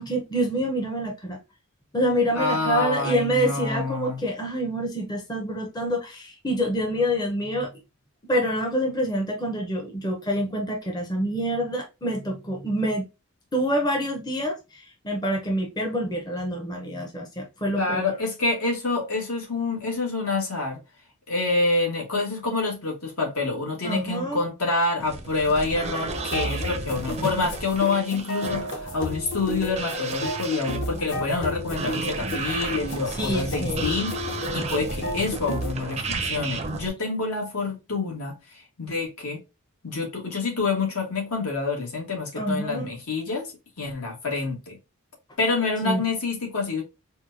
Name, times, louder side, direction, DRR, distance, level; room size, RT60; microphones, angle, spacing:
voice 1, 0.0-1.4 1.9-7.7 8.3-13.1 13.5-18.1 23.8-24.4 33.2-33.9 42.4-42.9 45.8-46.0, equal, 20° left, 0.6 m, -27 dB
voice 2, 2.3-4.2 17.7-20.8 21.3-38.3 38.8-39.4 39.8-43.5 43.8-44.8 45.4-46.8, left 3 dB, 75° left, 1.4 m, -27 dB
sound 1, 25.0-36.9, right 3 dB, 30° right, 0.5 m, -33 dB
sound 2, 26.1-35.7, left 1 dB, 55° left, 1.0 m, -33 dB
4.4 x 2.2 x 2.5 m
head